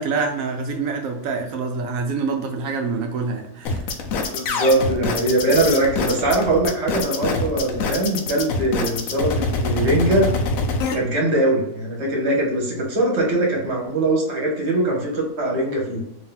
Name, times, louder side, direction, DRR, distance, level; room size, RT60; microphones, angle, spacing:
voice 1, 0.0-3.8, right 4 dB, 70° right, 4 dB, 0.9 m, -26 dB
sound 1, 3.7-10.9, left 3 dB, 70° left, 1.0 m, -24 dB
voice 2, 4.3-10.3 10.9-16.0, right 1 dB, 50° right, -1 dB, 1.2 m, -21 dB
3.1 x 2.8 x 3.7 m, 0.91 s
omnidirectional pair, 1.6 m